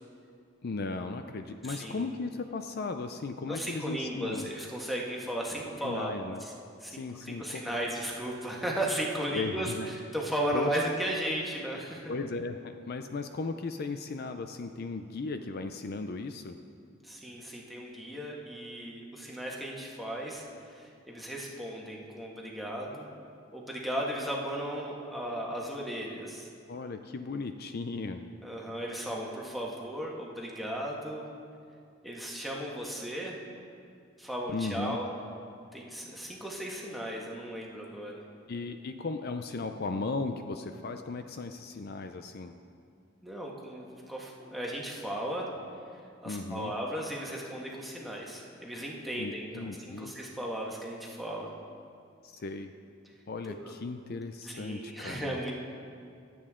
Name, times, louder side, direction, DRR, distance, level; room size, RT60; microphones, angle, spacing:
voice 1, 0.6-4.5 5.8-6.4 6.9-7.7 9.3-9.9 10.5-10.7 12.1-16.6 26.7-28.2 34.5-35.0 38.5-42.5 46.2-46.7 49.2-50.1 52.2-52.7 53.3-55.5, left 3 dB, 50° left, 7 dB, 0.5 m, -36 dB
voice 2, 1.6-2.0 3.5-6.1 6.4-6.5 6.8-12.1 17.0-20.4 20.7-23.1 23.5-26.5 28.4-31.3 32.0-33.4 34.2-35.1 35.7-38.2 43.2-45.5 46.2-51.5 53.6-53.7 54.4-55.5, right 1 dB, ahead, -3 dB, 1.6 m, -35 dB
25.5 x 8.6 x 3.7 m, 2.4 s
head